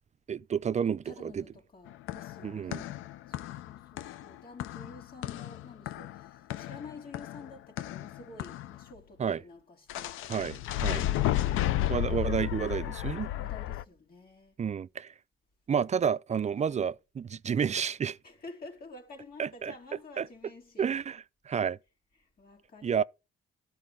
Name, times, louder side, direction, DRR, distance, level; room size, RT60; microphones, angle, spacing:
voice 1, 0.3-1.4 2.4-2.8 9.2-9.4 10.3-11.1 11.9-13.3 14.6-15.1 15.7-18.2 19.4-19.7 20.2-20.3 20.8-21.8 22.8-23.0, right 7 dB, 35° right, 0.5 m, -30 dB
voice 2, 1.0-10.2 11.0-11.9 13.4-14.6 16.6-16.8 18.2-20.9 22.2-23.0, left 3 dB, 50° left, 3.4 m, -50 dB
Walk to dungeon, 1.9-8.8 9.9-13.8, left 13 dB, 90° left, 0.6 m, -33 dB
12.0 x 4.7 x 7.6 m
cardioid pair, 90°, 20 cm